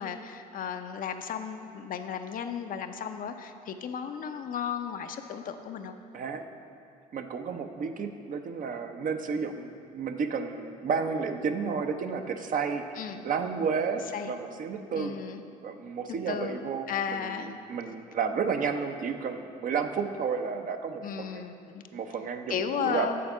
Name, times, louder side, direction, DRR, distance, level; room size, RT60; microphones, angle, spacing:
voice 1, 0.0-5.9 13.0-13.3 14.1-14.3 15.0-15.4 16.1-17.6 21.0-21.8 22.5-23.2, left 7 dB, 50° left, 7 dB, 0.5 m, -34 dB
voice 2, 6.1-6.4 7.1-12.8 13.2-15.2 15.6-21.5 21.9-23.1, right 5 dB, 50° right, 6 dB, 0.6 m, -32 dB
8.4 x 4.2 x 5.4 m, 2.4 s
hypercardioid pair, 60°, 18 cm